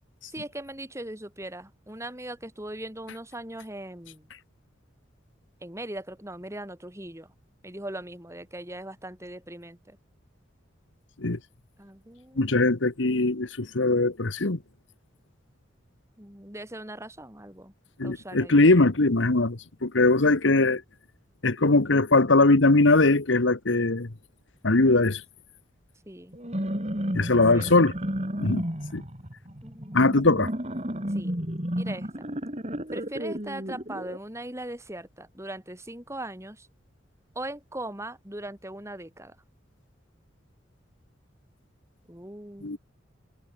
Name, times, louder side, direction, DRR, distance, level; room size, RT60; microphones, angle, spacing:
voice 1, 0.3-4.3 5.6-7.3 7.6-10.0 11.8-12.5 16.2-17.7 18.0-18.6 26.1-26.4 27.5-27.7 29.6-30.0 31.1-31.3 31.7-32.1 32.9-36.7 37.3-39.4 42.1-42.8, right 1 dB, 15° right, 3.8 m, -39 dB
voice 2, 12.4-14.6 18.0-20.8 21.4-24.1 24.6-25.2 27.1-27.9 28.4-28.6 28.9-29.0 29.9-30.5 42.6-42.8, left 2 dB, 70° left, 1.3 m, -21 dB
sound 1, 26.3-34.2, equal, 35° right, 4.7 m, -32 dB
head